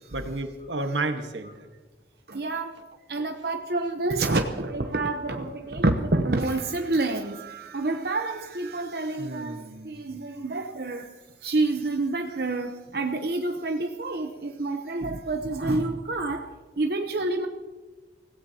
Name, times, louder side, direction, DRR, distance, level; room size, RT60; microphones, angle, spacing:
voice 1, 0.1-1.5 9.2-10.0, right 2 dB, 85° right, 6 dB, 1.4 m, -31 dB
voice 2, 2.3-2.8 3.1-11.2 11.4-16.5 16.8-17.5, right 2 dB, 60° right, 4 dB, 0.9 m, -28 dB
25.0 x 16.5 x 2.9 m, 1.3 s
head